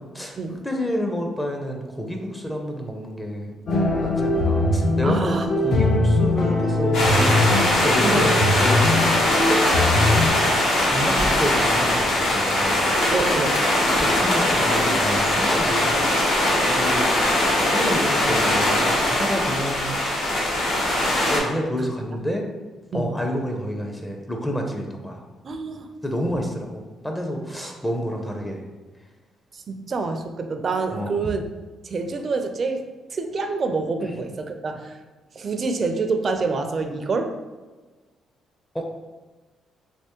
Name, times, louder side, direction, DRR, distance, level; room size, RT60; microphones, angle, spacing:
voice 1, 0.1-3.5 4.0-8.3 8.6-9.2 10.8-12.9 14.0-16.4 16.7-17.1 17.6-20.0 21.3-22.5 22.9-25.3 26.0-28.6 30.9-31.1 34.0-34.1 38.7-38.8, equal, 10° left, 2 dB, 0.5 m, -29 dB
sound 1, 3.7-10.3, left 2 dB, 55° left, 0.6 m, -21 dB
voice 2, 5.0-5.5 8.0-8.3 13.1-13.6 22.1-22.2 22.9-23.1 25.4-25.9 26.4-26.5 27.6-27.7 29.5-31.4 31.8-35.0 35.3-37.3, right 4 dB, 45° right, 6 dB, 0.4 m, -27 dB
sound 2, 6.9-21.4, left 1 dB, 85° left, 0.9 m, -21 dB
3.4 x 2.9 x 2.9 m, 1.3 s
cardioid pair, 90°, 0 cm